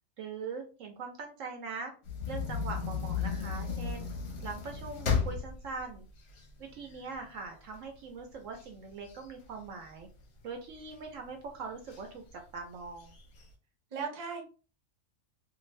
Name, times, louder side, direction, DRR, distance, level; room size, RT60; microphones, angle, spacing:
voice 1, 0.2-1.9 2.3-4.1 4.4-6.1 6.6-10.1 10.4-13.2, right 4 dB, 70° right, 4 dB, 0.9 m, -42 dB
sound 1, 2.1-7.2 7.7-7.8 8.1-10.2 10.8-11.3 11.9-12.0 12.3-12.4 12.8-13.5, left 6 dB, 55° left, 0.8 m, -34 dB
voice 2, 2.8-3.3 13.9-14.4, right 5 dB, 35° right, 1 dB, 0.7 m, -39 dB
2.6 x 2.3 x 3.0 m, 0.35 s
omnidirectional pair, 1.5 m